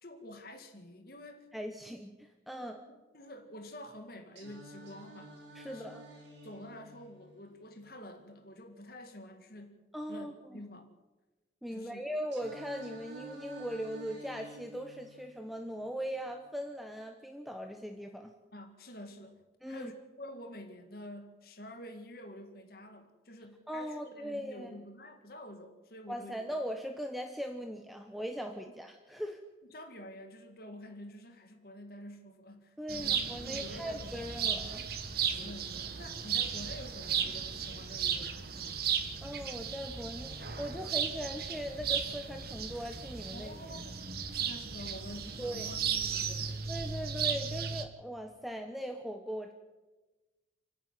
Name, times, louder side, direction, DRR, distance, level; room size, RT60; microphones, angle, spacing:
voice 1, 0.0-1.5 2.6-5.3 5.6-6.0 6.4-9.8 10.1-10.9 11.7-12.0 18.5-26.4 29.7-34.7 35.3-38.8 43.3-44.0 44.3-46.6, left 1 dB, 55° left, 6 dB, 2.0 m, -48 dB
voice 2, 1.5-2.8 5.5-6.0 9.9-10.6 11.6-18.3 19.6-19.9 23.7-24.8 26.1-29.4 32.8-34.9 39.2-43.8 44.3-44.4 45.4-45.7 46.7-49.5, equal, ahead, 4 dB, 1.1 m, -40 dB
Singing, 4.4-8.4 12.3-16.4, equal, 70° right, 6.0 m, -51 dB
sound 1, 32.9-47.8, right 7 dB, 55° right, 1.7 m, -35 dB
29.5 x 10.0 x 9.2 m, 1.2 s
head